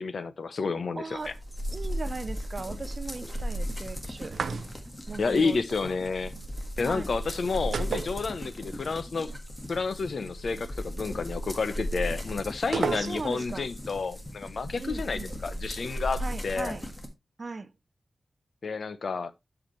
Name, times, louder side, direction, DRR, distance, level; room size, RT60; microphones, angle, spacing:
voice 1, 0.0-1.3 5.2-6.3 6.8-9.3 9.7-16.8 18.6-19.3, left 4 dB, 65° left, 0.7 m, -30 dB
voice 2, 1.0-1.4 1.7-4.4 5.1-5.9 6.8-7.1 12.7-13.7 14.8-15.3 16.2-16.9 17.4-17.7, right 3 dB, 45° right, 0.6 m, -38 dB
sound 1, 1.2-17.1, equal, 15° left, 1.6 m, -36 dB
sound 2, 4.3-5.0 7.7-8.8 9.0-9.1 12.7-13.5, right 5 dB, 90° right, 0.5 m, -32 dB
12.5 x 5.0 x 3.1 m
wide cardioid pair, 130°, 0 cm